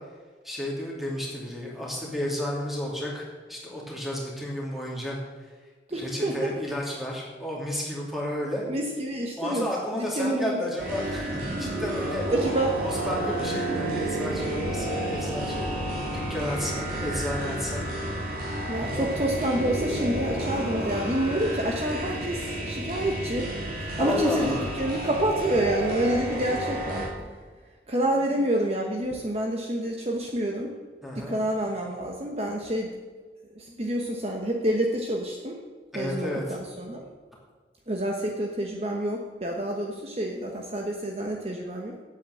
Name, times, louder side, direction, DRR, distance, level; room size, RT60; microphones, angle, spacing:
voice 1, 0.4-5.2 5.9-8.6 9.4-12.2 12.8-15.7 16.1-17.8 18.1-18.4 18.7-19.1 24.0-24.6 31.0-31.4 35.9-36.6, left 1 dB, ahead, -3 dB, 2.7 m, -32 dB
voice 2, 5.9-6.5 8.7-9.7 9.9-10.7 12.3-12.8 18.7-23.5 23.8-27.1 27.9-30.7 31.1-32.9 33.6-35.6 35.9-37.1 37.9-42.0, right 1 dB, 35° right, 0 dB, 1.0 m, -28 dB
sound 1, 10.8-27.1, right 1 dB, 50° right, 2.8 m, -31 dB
8.7 x 8.4 x 7.8 m, 1.5 s
head